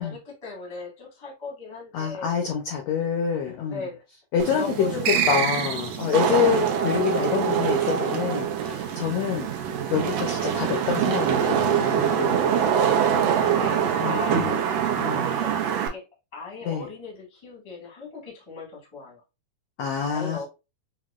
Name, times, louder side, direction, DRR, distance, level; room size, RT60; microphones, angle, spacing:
voice 1, 0.0-2.3 3.6-4.0 4.3-5.3 9.2-9.4 12.8-14.5 14.8-16.0 16.3-19.2 20.0-20.4, left 3 dB, 45° left, 0.3 m, -38 dB
voice 2, 1.9-3.9 4.3-9.5 9.9-12.6 14.0-14.6 15.0-15.3 16.7-16.9 19.8-20.4, left 8 dB, 85° left, 1.5 m, -27 dB
Wind / Rain, 4.4-15.9, right 8 dB, 90° right, 1.4 m, -24 dB
sound 1, 5.0-6.2, right 7 dB, 70° right, 2.2 m, -25 dB
6.3 x 2.1 x 2.3 m
omnidirectional pair, 3.9 m